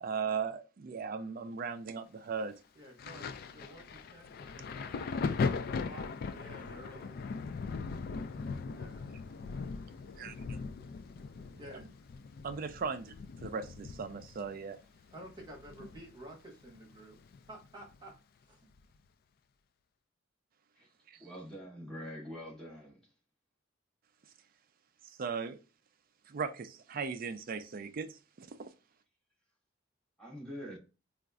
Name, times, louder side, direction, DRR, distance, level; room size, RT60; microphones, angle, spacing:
voice 1, 0.0-2.6 10.2-10.3 11.7-11.8 12.4-13.1 13.4-14.8 25.2-25.6 26.3-28.6, right 5 dB, 45° right, 0.4 m, -37 dB
voice 2, 2.7-5.2 5.8-7.2 8.4-9.1 11.6-11.9 15.1-17.2 17.5-18.1 18.5-18.6, right 1 dB, 20° right, 1.1 m, -51 dB
Thunder, 3.0-16.3 16.6-18.0 18.8-19.0, left 4 dB, 50° left, 0.3 m, -39 dB
voice 3, 21.2-23.0 30.2-30.8, equal, 5° left, 1.2 m, -44 dB
3.9 x 2.5 x 2.3 m
head